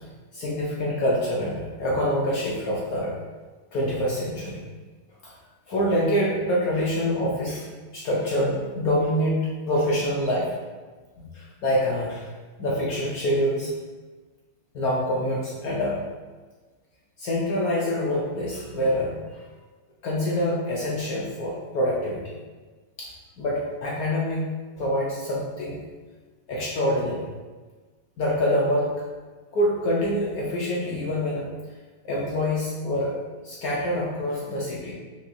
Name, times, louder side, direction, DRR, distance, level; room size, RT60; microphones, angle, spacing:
voice 1, 0.3-3.1 3.7-4.6 5.2-5.3 5.7-7.7 7.9-10.6 11.3-12.2 12.6-13.7 14.7-16.0 17.2-19.4 20.0-22.3 23.0-23.1 23.4-24.4 24.8-25.8 26.5-27.2 28.2-28.9 29.5-31.5 32.0-33.1 33.4-34.9, equal, 70° left, -5 dB, 0.8 m, -25 dB
4.4 x 3.0 x 2.5 m, 1.3 s
omnidirectional pair, 2.2 m